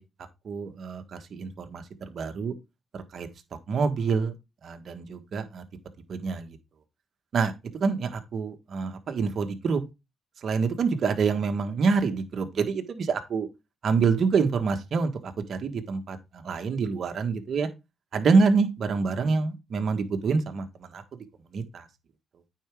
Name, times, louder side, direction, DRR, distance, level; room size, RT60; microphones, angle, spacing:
voice 1, 0.4-2.5 2.9-3.3 3.7-4.3 4.6-5.6 6.1-6.5 7.3-9.8 10.4-13.5 13.8-17.7 18.1-21.0 21.5-21.8, right 5 dB, 55° right, 6 dB, 1.5 m, -26 dB
9.2 x 4.9 x 3.6 m, 0.24 s
cardioid pair, 90°, 0 cm